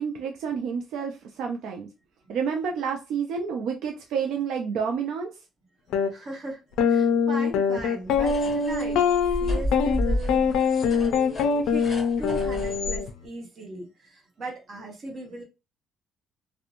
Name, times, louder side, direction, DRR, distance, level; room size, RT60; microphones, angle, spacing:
voice 1, 0.0-1.9 2.3-5.3, right 6 dB, 65° right, 0.3 m, -29 dB
sound 1, 5.9-6.1 6.8-13.1, left 6 dB, 90° left, 0.3 m, -23 dB
voice 2, 6.1-9.0 9.3-10.6 11.6-15.4, right 1 dB, 35° right, 0.9 m, -38 dB
sound 2, 8.1-13.0, left 1 dB, 20° left, 1.0 m, -31 dB
2.5 x 2.1 x 2.8 m
cardioid pair, 175°, 0 cm